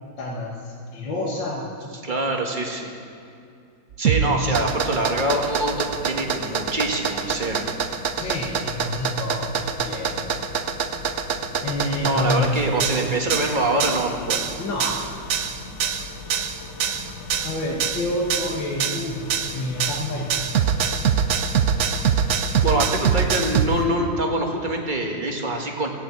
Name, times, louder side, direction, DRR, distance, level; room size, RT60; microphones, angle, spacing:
voice 1, 0.2-1.7 4.1-4.6 8.2-10.2 11.6-12.6 14.6-15.1 17.4-19.2 19.5-20.4, left 1 dB, 75° left, -3 dB, 2.2 m, -28 dB
voice 2, 1.9-2.9 4.0-7.7 12.0-14.4 22.6-25.9, right 1 dB, 25° right, 1 dB, 1.6 m, -25 dB
sound 1, 3.9-23.7, right 7 dB, 65° right, 0.7 m, -24 dB
sound 2, 4.7-23.9, left 3 dB, 40° left, 1.8 m, -39 dB
16.0 x 8.7 x 8.4 m, 2.5 s
omnidirectional pair, 2.0 m